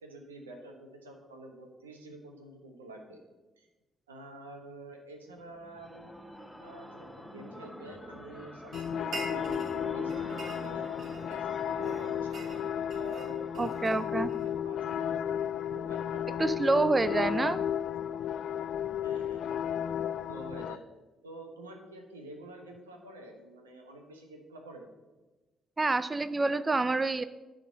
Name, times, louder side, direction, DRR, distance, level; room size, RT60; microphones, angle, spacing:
voice 1, 0.0-3.2 3.6-3.7 4.1-6.1 6.6-9.5 9.9-10.9 11.3-12.4 12.9-15.1 15.4-16.6 17.1-17.4 19.0-19.6 20.3-20.8 21.2-24.9, right 1 dB, 85° right, 3 dB, 1.1 m, -48 dB
sound 1, 5.4-14.2, equal, ahead, 1.1 m, -46 dB
sound 2, 8.7-20.8, left 9 dB, 60° left, 0.3 m, -33 dB
sound 3, 8.7-9.8 10.1-11.4 11.8-14.5, right 2 dB, 55° right, 3.0 m, -44 dB
voice 2, 13.6-14.3 16.4-17.6 25.8-27.2, right 3 dB, 25° right, 14 dB, 0.4 m, -27 dB
10.5 x 3.8 x 7.3 m, 1.1 s
figure-of-eight pair, 45°, 0 cm